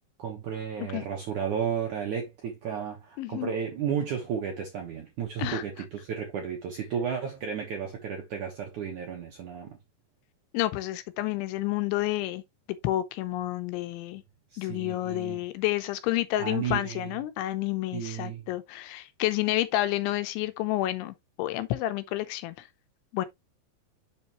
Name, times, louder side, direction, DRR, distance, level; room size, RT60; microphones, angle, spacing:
voice 1, 0.2-9.8 14.5-15.4 16.4-17.1 17.9-18.4, right 7 dB, 70° right, 1.8 m, -33 dB
voice 2, 3.2-3.5 5.4-5.6 10.5-12.4 12.7-14.2 14.6-22.7 23.1-23.3, left 15 dB, 85° left, 3.2 m, -30 dB
7.3 x 5.6 x 3.0 m
omnidirectional pair, 5.3 m